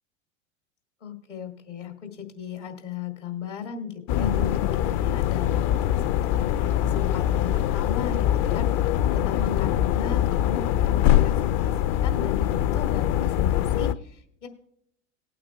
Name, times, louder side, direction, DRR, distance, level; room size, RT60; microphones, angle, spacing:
voice 1, 1.0-14.5, left 7 dB, 80° left, 4 dB, 2.2 m, -37 dB
sound 1, 4.1-13.9, left 11 dB, 40° left, 0.5 m, -23 dB
19.5 x 8.7 x 2.3 m, 0.70 s
figure-of-eight pair, 80°, 36 cm